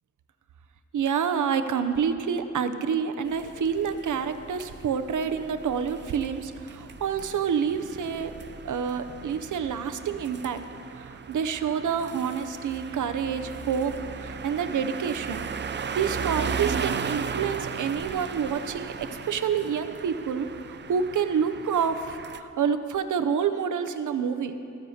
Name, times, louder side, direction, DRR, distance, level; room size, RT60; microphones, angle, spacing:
voice 1, 0.9-8.3 8.6-10.6 11.0-15.4 15.9-24.5, right 7 dB, 75° right, 10 dB, 0.6 m, -28 dB
sound 1, 3.3-22.4, right 6 dB, 40° right, 0.4 m, -37 dB
14.5 x 14.5 x 2.8 m, 2.7 s
wide cardioid pair, 135°, 30 cm